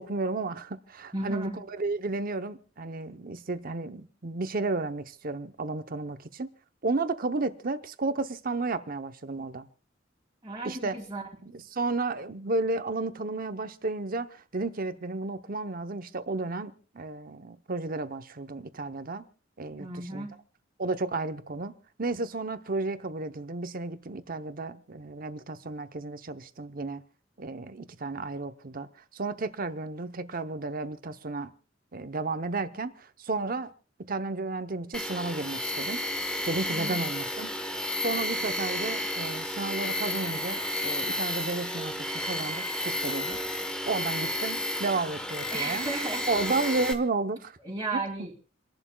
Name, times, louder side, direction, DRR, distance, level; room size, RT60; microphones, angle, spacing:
voice 1, 0.0-6.5 6.8-9.7 10.6-11.0 11.5-19.3 19.6-20.3 20.8-27.0 27.4-28.9 29.1-31.5 31.9-33.7 34.0-36.0 36.5-37.5 38.0-43.4 43.9-45.9 46.3-47.6 47.9-48.0, right 3 dB, 50° right, 0.8 m, -32 dB
voice 2, 1.1-1.6 10.4-11.2 19.8-20.3 36.7-37.0 45.5-46.7 47.6-48.3, right 2 dB, 20° right, 2.2 m, -35 dB
Tools, 34.9-46.9, left 1 dB, 5° left, 1.1 m, -32 dB
29.0 x 11.0 x 2.3 m
head